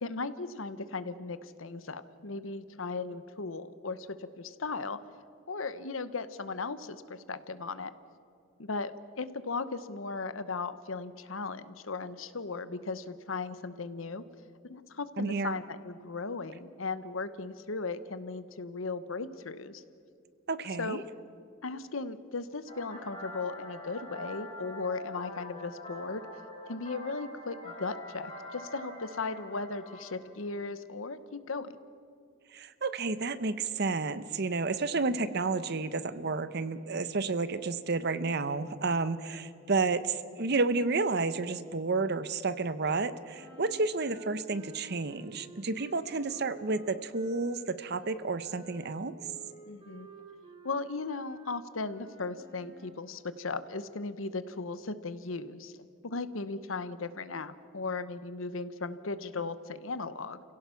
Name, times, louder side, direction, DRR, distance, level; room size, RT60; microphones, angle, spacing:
voice 1, 0.0-5.0 5.5-7.9 8.6-8.9 9.2-14.2 14.7-19.8 20.8-21.1 21.6-26.2 26.7-31.7 49.7-50.1 50.6-55.7 56.0-60.4, left 3 dB, 80° left, 13 dB, 1.0 m, -37 dB
voice 2, 15.2-15.6 20.5-21.0 32.5-49.1, right 3 dB, 55° right, 13 dB, 0.9 m, -31 dB
sound 1, 22.7-30.1, left 1 dB, 25° left, 5.5 m, -44 dB
sound 2, 43.3-53.0, right 2 dB, 25° right, 3.1 m, -52 dB
29.5 x 17.0 x 5.7 m, 2.4 s
head